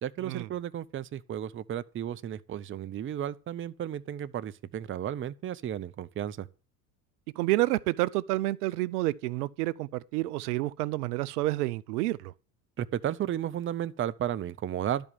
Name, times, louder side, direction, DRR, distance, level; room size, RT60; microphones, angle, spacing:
voice 1, 0.0-6.5 12.8-15.1, right 10 dB, 25° right, 0.7 m, -33 dB
voice 2, 7.4-12.3, right 18 dB, 70° right, 0.6 m, -29 dB
12.0 x 5.3 x 7.2 m
hypercardioid pair, 80°, 47 cm